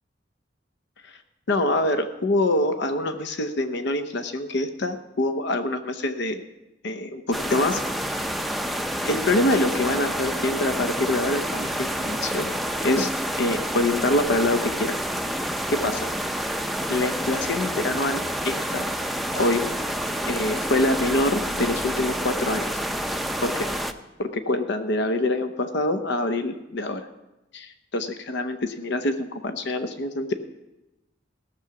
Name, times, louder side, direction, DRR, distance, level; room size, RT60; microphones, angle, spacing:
voice 1, 1.5-6.4 6.8-7.8 8.1-8.3 9.0-12.5 12.8-13.1 13.4-15.0 15.7-16.1 16.9-18.9 19.3-19.7 20.3-22.8 23.4-23.8 24.2-27.1 27.5-30.3, left 2 dB, 65° left, 9 dB, 0.7 m, -25 dB
sound 1, 7.3-23.9, equal, ahead, 0.5 m, -28 dB
17.0 x 7.0 x 5.9 m, 1.0 s
head